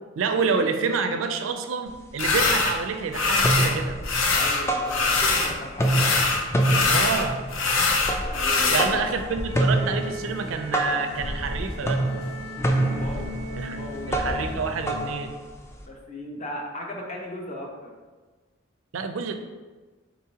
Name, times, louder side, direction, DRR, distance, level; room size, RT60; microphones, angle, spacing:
voice 1, 0.2-4.0 6.9-7.4 7.9-12.0 13.5-13.8 14.1-15.3 18.9-19.3, right 5 dB, 75° right, 7 dB, 0.4 m, -28 dB
sound 1, 1.9-2.0 2.3-2.9 3.2-5.4 5.7-15.8, right 1 dB, 15° left, 0.3 m, -27 dB
sound 2, 2.2-2.7 3.1-3.7 4.0-5.5 5.8-8.9, left 3 dB, 80° left, 0.6 m, -23 dB
voice 2, 4.3-6.0 8.3-9.0 12.9-13.3 13.6-14.2 14.5-14.6 15.8-17.9, left 1 dB, 35° left, 0 dB, 0.7 m, -37 dB
sound 3, 8.5-15.0, left 1 dB, 60° left, 1.5 m, -38 dB
4.7 x 4.0 x 2.8 m, 1.3 s
head